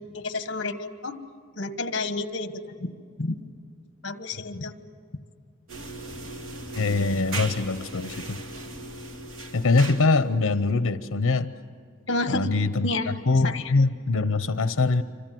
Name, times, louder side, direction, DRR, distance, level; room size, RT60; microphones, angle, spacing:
voice 1, 0.1-1.2 1.6-2.9 3.2-3.4 4.0-4.7 12.1-12.4 12.8-13.1 13.4-13.6, left 2 dB, 55° left, 9 dB, 1.5 m, -30 dB
sound 1, 5.7-10.3, right 2 dB, 80° right, 2.5 m, -37 dB
voice 2, 6.8-8.4 9.5-11.5 12.3-15.0, left 3 dB, 80° left, 11 dB, 0.8 m, -23 dB
27.5 x 25.5 x 7.7 m, 2.2 s
head